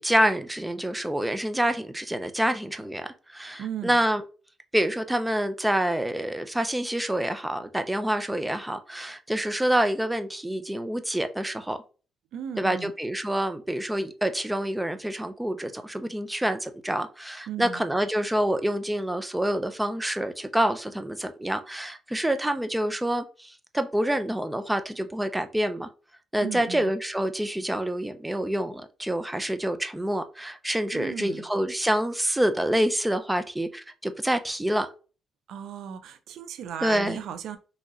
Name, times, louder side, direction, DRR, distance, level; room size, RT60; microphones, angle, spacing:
voice 1, 0.0-4.2 4.7-11.8 12.6-25.9 26.3-34.9 36.8-37.2, right 1 dB, 10° right, 0.5 m, -27 dB
voice 2, 3.6-4.0 12.3-12.9 17.5-17.8 26.4-26.9 30.9-31.5 35.5-37.6, right 8 dB, 80° right, 0.4 m, -36 dB
4.0 x 2.9 x 2.4 m
cardioid pair, 90°, 0 cm